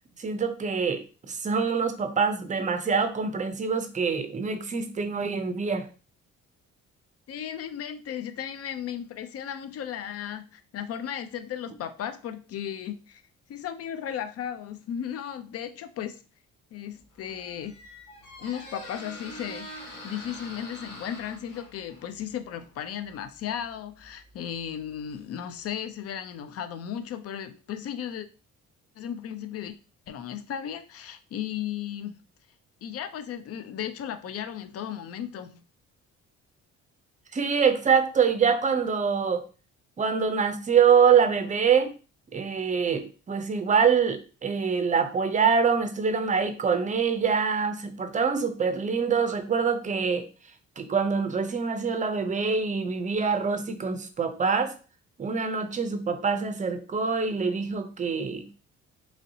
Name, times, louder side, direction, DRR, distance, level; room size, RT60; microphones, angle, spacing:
voice 1, 0.2-5.8 37.3-39.4 40.0-41.9 42.3-50.3 50.8-54.7 55.2-58.5, right 6 dB, 25° right, 0.5 m, -25 dB
voice 2, 7.3-13.2 13.5-16.2 16.7-17.8 18.4-28.3 29.0-29.8 30.1-32.2 32.8-35.6, left 9 dB, 55° left, 0.4 m, -35 dB
Squeak, 17.0-25.8, left 1 dB, 90° left, 1.0 m, -46 dB
3.0 x 2.7 x 2.7 m
cardioid pair, 90°, 30 cm